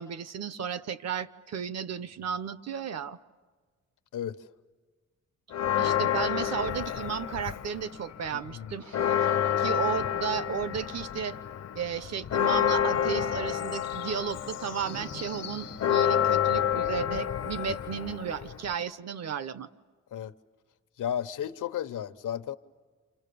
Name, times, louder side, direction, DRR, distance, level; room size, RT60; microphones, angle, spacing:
voice 1, 0.0-3.2 5.8-8.8 9.6-11.4 11.7-19.7, right 7 dB, 60° right, 0.9 m, -34 dB
voice 2, 4.1-4.4 8.3-8.8 20.1-20.3 21.0-22.6, left 9 dB, 85° left, 1.0 m, -34 dB
Church bell, 5.5-7.9 8.3-8.4 8.7-18.7, left 9 dB, 55° left, 0.7 m, -29 dB
sound 1, 8.8-11.2 12.7-13.6 14.0-16.0, right 1 dB, 85° right, 7.7 m, -51 dB
29.5 x 28.5 x 6.9 m
wide cardioid pair, 170°, 30 cm